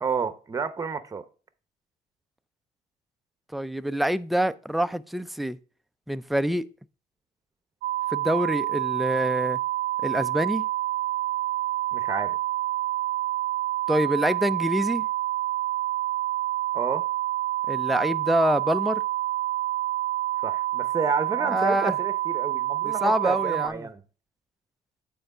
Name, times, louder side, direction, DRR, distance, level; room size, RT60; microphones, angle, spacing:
voice 1, 0.0-1.2 11.9-12.4 16.7-17.1 20.4-24.0, right 5 dB, 20° right, 0.7 m, -30 dB
voice 2, 3.5-5.6 6.1-6.7 8.1-9.6 10.0-10.7 13.9-15.1 17.7-19.0 21.4-21.9 22.8-23.7, equal, ahead, 0.3 m, -26 dB
sound 1, 7.8-23.7, right 15 dB, 80° right, 0.5 m, -28 dB
7.9 x 4.5 x 4.8 m
cardioid pair, 110°, 17 cm